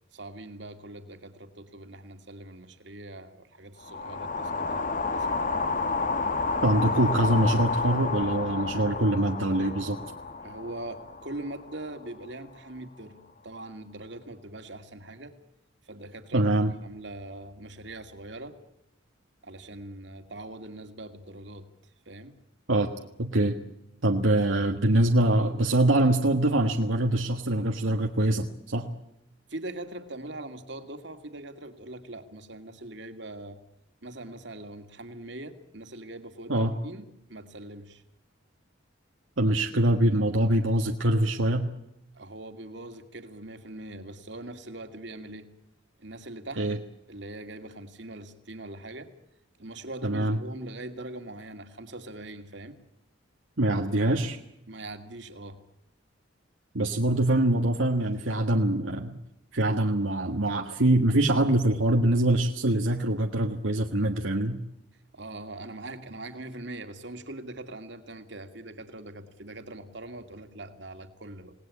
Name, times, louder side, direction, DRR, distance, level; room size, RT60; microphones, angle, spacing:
voice 1, 0.1-5.6 10.4-13.1 13.4-15.3 15.8-16.5 16.8-18.6 19.4-22.4 29.5-33.6 34.0-38.0 42.1-45.5 46.0-46.6 47.1-49.1 49.6-52.8 54.7-55.6 64.9-71.5, right 2 dB, 60° right, 7 dB, 2.5 m, -42 dB
sound 1, 3.8-12.1, left 3 dB, 40° left, 1.3 m, -30 dB
voice 2, 6.6-10.0 16.3-16.7 22.7-22.9 23.2-23.6 24.0-28.9 36.5-36.8 39.4-41.7 46.6-46.8 50.0-50.4 53.6-54.4 56.7-59.2 59.5-64.6, right 1 dB, 80° right, 3 dB, 1.6 m, -24 dB
28.0 x 19.0 x 8.5 m, 0.85 s
head